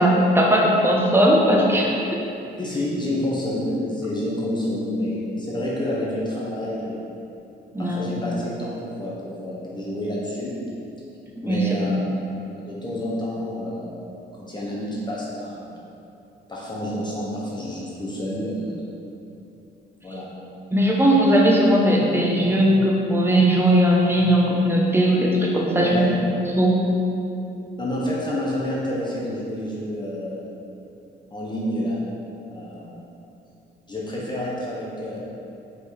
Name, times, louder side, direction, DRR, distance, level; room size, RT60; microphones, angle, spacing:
voice 1, 0.0-2.2 7.7-8.2 11.4-12.0 20.7-26.0 26.6-26.8, equal, 10° right, -2 dB, 1.1 m, -18 dB
voice 2, 2.6-7.0 7.8-10.6 11.4-12.0 12.7-15.7 16.5-18.8 20.0-20.3 25.8-26.1 27.8-30.6 31.3-32.0 32.5-33.0 33.9-35.2, left 1 dB, 20° left, -6 dB, 1.1 m, -29 dB
4.9 x 4.7 x 4.3 m, 2.8 s
cardioid pair, 90°, 20 cm